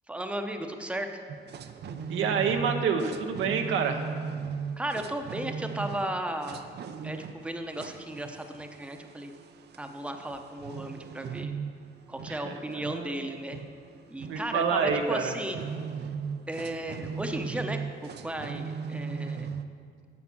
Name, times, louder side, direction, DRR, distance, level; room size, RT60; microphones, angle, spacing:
voice 1, 0.1-1.1 4.8-6.7 7.0-9.3 9.8-11.5 12.1-13.6 14.1-15.6 16.5-19.5, right 1 dB, 5° right, 5 dB, 0.8 m, -35 dB
sound 1, 1.3-19.7, right 6 dB, 55° right, 0.6 m, -38 dB
voice 2, 2.1-4.1 12.3-13.2 14.2-15.3, right 6 dB, 85° right, 5 dB, 0.9 m, -28 dB
9.6 x 7.0 x 6.1 m, 2.1 s
cardioid pair, 90°, 20 cm